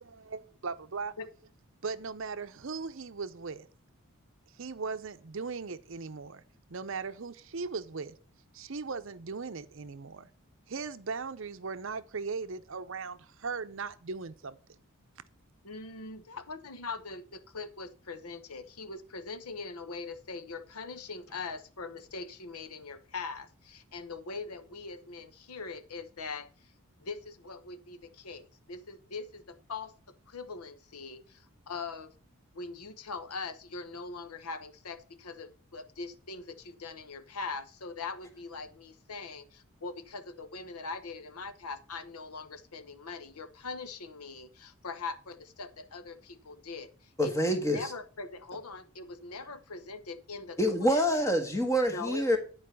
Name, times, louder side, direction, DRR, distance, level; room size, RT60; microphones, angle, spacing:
voice 1, 0.0-1.1 1.8-3.7 4.6-6.4 6.7-8.2 8.5-10.3 10.7-14.6, right 4 dB, 60° right, 0.6 m, -38 dB
voice 2, 15.6-26.7 27.0-29.9 30.3-32.1 32.5-51.0 51.8-52.4, left 4 dB, 90° left, 1.0 m, -42 dB
voice 3, 47.2-47.9 50.6-52.4, equal, 15° left, 1.4 m, -26 dB
9.9 x 4.8 x 6.9 m
head